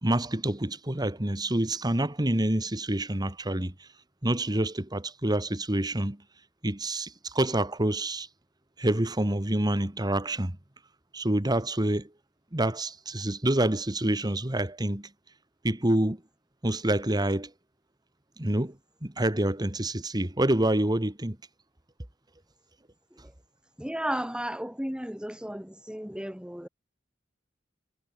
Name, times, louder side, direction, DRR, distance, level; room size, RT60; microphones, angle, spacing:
voice 1, 0.0-3.7 4.2-6.2 6.6-8.3 8.8-10.6 11.1-12.1 12.5-15.1 15.6-16.2 16.6-17.5 18.4-18.7 19.0-21.4, right 1 dB, 20° right, 1.7 m, -27 dB
voice 2, 23.8-26.7, equal, 5° right, 2.1 m, -34 dB
head